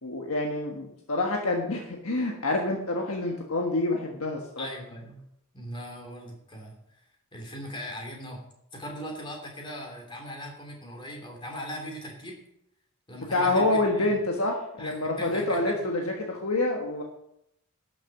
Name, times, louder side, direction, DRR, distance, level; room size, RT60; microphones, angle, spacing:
voice 1, 0.0-4.7 13.1-17.0, left 2 dB, 70° left, 1 dB, 1.5 m, -27 dB
voice 2, 4.6-5.2 5.5-7.0 7.3-8.4 8.7-12.4 13.1-14.2 14.8-15.9, equal, 25° left, 1 dB, 3.0 m, -39 dB
11.5 x 7.0 x 5.9 m, 0.77 s
head